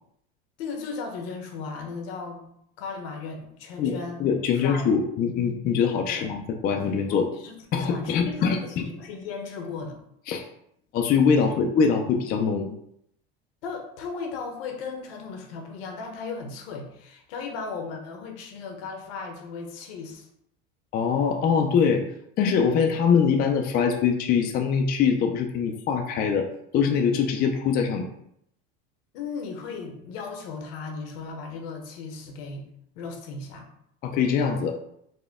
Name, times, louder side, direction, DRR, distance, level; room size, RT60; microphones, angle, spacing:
voice 1, 0.6-4.2 4.5-4.9 6.1-6.3 7.3-10.0 11.4-11.6 13.6-20.3 29.1-32.7 32.9-33.7, left 4 dB, 75° left, 3 dB, 0.9 m, -36 dB
voice 2, 3.8-7.3 7.7-8.8 10.3-10.5 10.9-12.7 20.9-22.0 22.4-26.5 26.7-28.1 34.0-34.8, left 6 dB, 35° left, 4 dB, 0.4 m, -23 dB
4.1 x 2.2 x 3.5 m, 0.73 s
supercardioid pair, 125°, 29 cm